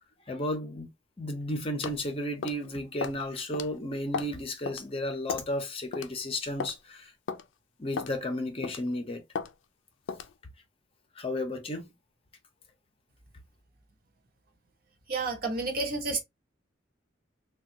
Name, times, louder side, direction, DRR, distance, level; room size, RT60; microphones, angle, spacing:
voice 1, 0.3-0.9 1.2-7.1 7.8-9.2 11.2-11.9, left 1 dB, 30° left, 0.6 m, -33 dB
sound 1, 1.8-2.0 2.4-2.6 3.0-3.2 3.5-3.7 4.1-4.4 4.7-4.8 5.3-5.5 5.9-6.1 6.6-6.8 7.3-7.4 8.0-8.2 8.6-8.9 9.4-9.5 10.1-10.3, left 5 dB, 80° left, 0.4 m, -34 dB
voice 2, 15.1-16.2, right 3 dB, 50° right, 0.8 m, -30 dB
3.4 x 2.2 x 2.7 m
head